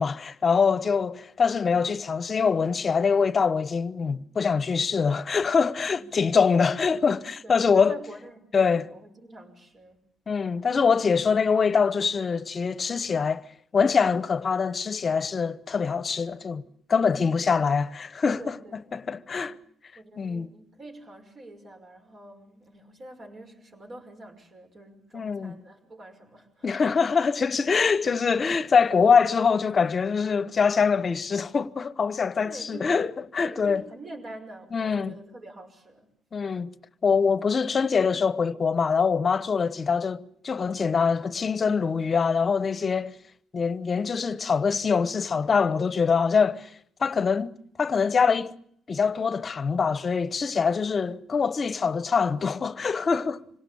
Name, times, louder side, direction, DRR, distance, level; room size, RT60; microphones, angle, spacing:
voice 1, 0.0-7.9 8.5-8.9 10.3-13.4 13.7-16.6 16.9-18.5 18.9-19.6 20.2-20.5 25.1-25.5 26.6-33.8 34.7-35.1 36.3-36.7 37.0-43.2 43.5-46.7 47.0-47.5 47.8-48.5 48.9-53.4, left 5 dB, 40° left, 1.0 m, -24 dB
voice 2, 6.0-6.3 7.4-10.0 18.4-18.8 20.0-26.8 32.4-33.0 33.4-36.1, right 1 dB, 45° right, 5.9 m, -46 dB
26.5 x 18.0 x 8.6 m
cardioid pair, 90°, 0 cm